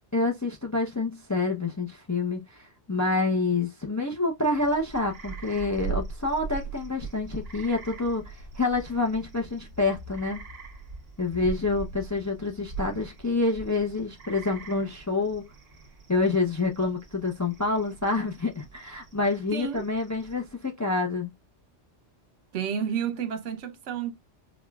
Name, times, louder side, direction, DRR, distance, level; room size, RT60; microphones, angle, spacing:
voice 1, 0.1-10.4 11.2-15.4 16.1-21.3, left 3 dB, 25° left, 0.4 m, -27 dB
sound 1, 4.4-20.6, right 5 dB, 60° right, 1.1 m, -41 dB
voice 2, 19.5-19.9 22.5-24.1, right 8 dB, 85° right, 1.0 m, -30 dB
4.7 x 2.2 x 2.2 m
omnidirectional pair, 1.2 m